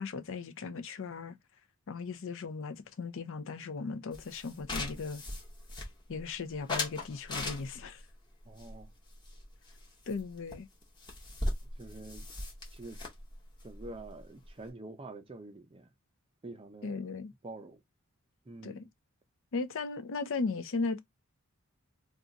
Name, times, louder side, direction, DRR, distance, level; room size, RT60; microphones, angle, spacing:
voice 1, 0.0-1.3 1.9-5.2 6.1-8.0 10.1-10.7 16.8-17.3 18.6-18.9 19.5-21.0, left 4 dB, 60° left, 0.5 m, -37 dB
sound 1, 4.1-6.2 6.7-8.0 8.6-9.8 10.1-10.2 10.5-10.6 10.8-14.7, left 2 dB, 20° left, 0.8 m, -38 dB
voice 2, 8.4-8.9 11.6-12.3 12.7-13.0 13.6-15.9 16.4-17.1 17.4-17.8 18.5-18.8, right 2 dB, 25° right, 0.5 m, -47 dB
2.4 x 2.3 x 3.9 m
head